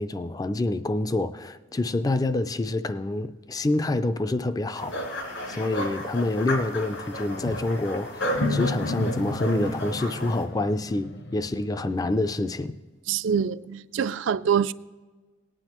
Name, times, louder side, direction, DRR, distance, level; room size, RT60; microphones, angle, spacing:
voice 1, 0.0-5.1 5.5-12.8, left 2 dB, 20° left, 0.4 m, -27 dB
sound 1, 4.8-10.4, equal, 75° left, 3.3 m, -33 dB
sound 2, 6.9-7.1 7.3-12.2, left 1 dB, 60° left, 0.9 m, -33 dB
voice 2, 13.1-14.7, right 7 dB, 65° right, 0.4 m, -25 dB
18.5 x 9.8 x 3.0 m
head